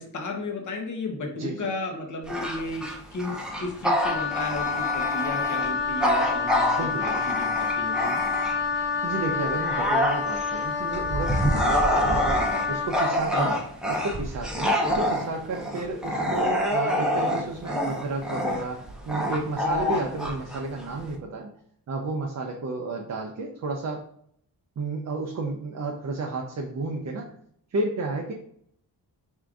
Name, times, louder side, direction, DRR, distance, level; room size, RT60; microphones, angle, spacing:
voice 1, 0.0-8.2 11.6-11.7 13.3-13.6, left 2 dB, 45° left, 2 dB, 0.9 m, -34 dB
voice 2, 1.4-1.7 6.8-7.1 9.0-13.6 13.9-21.5 21.9-24.0 24.8-27.3 27.7-28.3, right 3 dB, 45° right, 1 dB, 0.5 m, -32 dB
Bark / Growling, 2.2-8.8 9.3-21.2, equal, ahead, 0.6 m, -27 dB
Wind instrument woodwind instrument, 4.0-13.2, left 5 dB, 85° left, 1.1 m, -28 dB
3.6 x 2.5 x 4.6 m, 0.66 s
wide cardioid pair, 150°, 41 cm